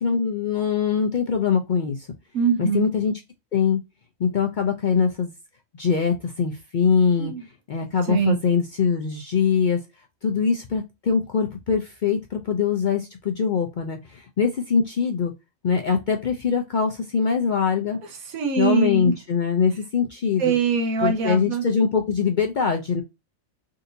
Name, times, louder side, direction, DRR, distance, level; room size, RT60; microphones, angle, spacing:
voice 1, 0.0-2.1 2.6-3.1 3.5-3.8 4.2-5.3 5.7-7.3 7.7-9.8 10.2-15.3 15.6-18.0 18.6-20.6 21.0-23.0, left 6 dB, 65° left, 0.4 m, -23 dB
voice 2, 2.3-2.9 7.2-7.4 8.1-8.4 18.3-19.1 20.4-21.7, right 6 dB, 85° right, 1.3 m, -23 dB
3.8 x 2.6 x 2.6 m
omnidirectional pair, 1.4 m